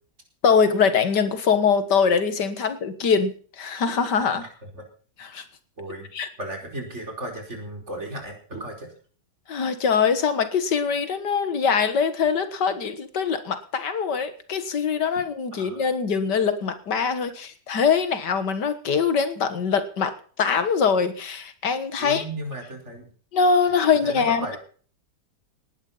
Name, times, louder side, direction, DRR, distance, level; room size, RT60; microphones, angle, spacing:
voice 1, 0.4-4.4 5.2-5.4 6.1-6.3 9.5-22.2 23.3-24.6, left 6 dB, 75° left, 11 dB, 2.1 m, -23 dB
voice 2, 5.8-6.1 6.4-8.9 15.6-15.9 22.0-23.1 24.0-24.6, right 1 dB, 40° right, 3 dB, 4.9 m, -35 dB
18.5 x 11.0 x 5.6 m, 0.44 s
omnidirectional pair, 1.9 m